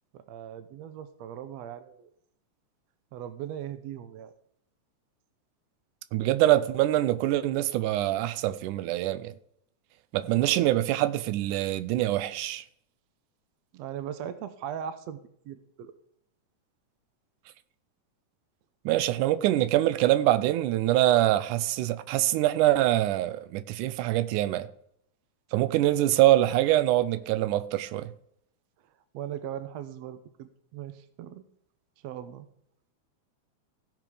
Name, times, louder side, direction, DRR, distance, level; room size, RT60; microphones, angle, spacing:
voice 1, 0.1-2.1 3.1-4.3 10.2-10.7 13.7-15.2 15.5-15.9 29.1-31.4 32.0-32.5, right 10 dB, 70° right, 1.8 m, -39 dB
voice 2, 6.1-9.3 10.1-12.6 18.9-24.7 25.5-28.1, right 14 dB, 90° right, 2.2 m, -24 dB
16.0 x 6.4 x 5.0 m
omnidirectional pair, 3.5 m